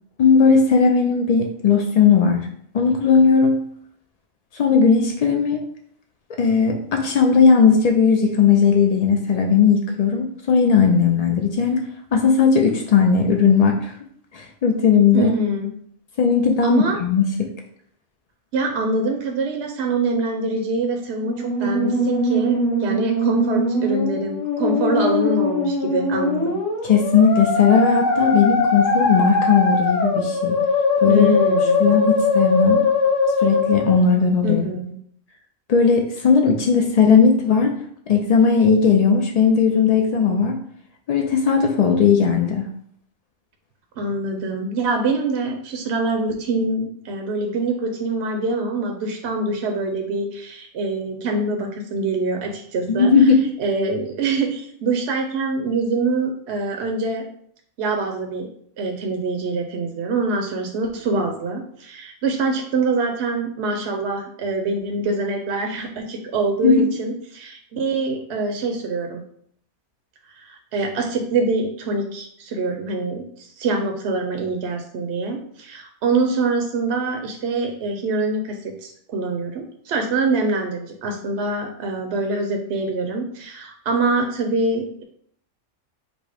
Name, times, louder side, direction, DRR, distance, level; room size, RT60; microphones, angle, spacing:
voice 1, 0.2-2.4 2.7-3.6 4.5-5.6 6.4-11.8 12.1-13.9 14.3-15.4 16.2-17.5 26.8-30.6 31.0-31.3 31.8-32.8 33.4-34.6 35.7-37.8 38.1-40.6 41.1-42.7 52.9-53.4 66.6-66.8, left 6 dB, 75° left, 3 dB, 0.3 m, -17 dB
voice 2, 15.1-15.7 16.6-17.0 18.5-26.6 31.1-31.8 34.4-35.0 44.0-53.3 53.6-57.2 57.8-58.5 58.8-69.2 70.3-85.0, right 3 dB, 70° right, 3 dB, 0.8 m, -24 dB
Musical instrument, 21.1-34.1, left 3 dB, 90° left, 1.4 m, -21 dB
5.2 x 2.1 x 4.8 m, 0.65 s
omnidirectional pair, 1.3 m